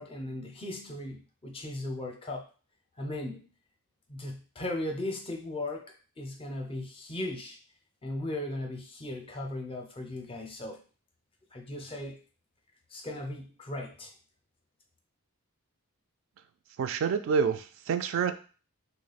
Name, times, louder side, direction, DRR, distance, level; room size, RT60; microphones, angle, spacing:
voice 1, 0.0-2.5 3.0-3.5 4.1-7.6 8.0-10.8 11.5-12.2 12.9-14.1, left 1 dB, 25° left, 3 dB, 0.5 m, -37 dB
voice 2, 16.8-18.4, right 6 dB, 60° right, 8 dB, 0.3 m, -28 dB
3.1 x 2.1 x 3.9 m, 0.37 s
head